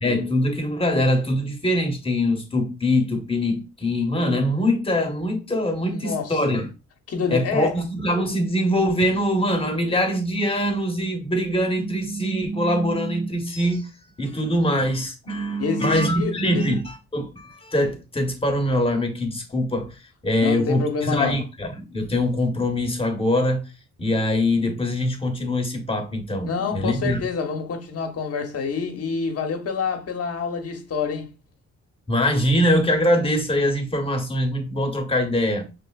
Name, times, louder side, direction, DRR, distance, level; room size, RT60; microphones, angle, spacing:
voice 1, 0.0-6.7 7.3-13.9 14.2-20.0 20.2-23.7 24.0-27.2 32.1-35.7, left 1 dB, 20° left, 1.1 m, -23 dB
voice 2, 5.9-6.6 7.1-7.7 15.6-16.8 20.4-21.4 26.5-31.3, left 5 dB, 50° left, 1.1 m, -27 dB
5.2 x 3.4 x 2.3 m
cardioid pair, 90°, 30 cm